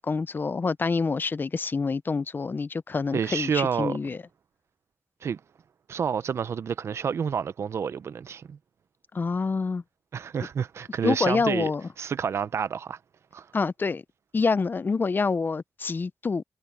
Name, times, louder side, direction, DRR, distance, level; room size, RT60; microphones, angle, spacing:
voice 1, 0.0-4.2 9.1-9.8 11.0-11.8 13.5-14.0 14.3-16.4, left 4 dB, 45° left, 0.6 m, -27 dB
voice 2, 3.1-4.0 5.2-5.4 5.9-8.6 10.1-11.7 12.0-13.0 13.3-13.5, right 7 dB, 75° right, 0.8 m, -29 dB
cardioid pair, 55°, 5 cm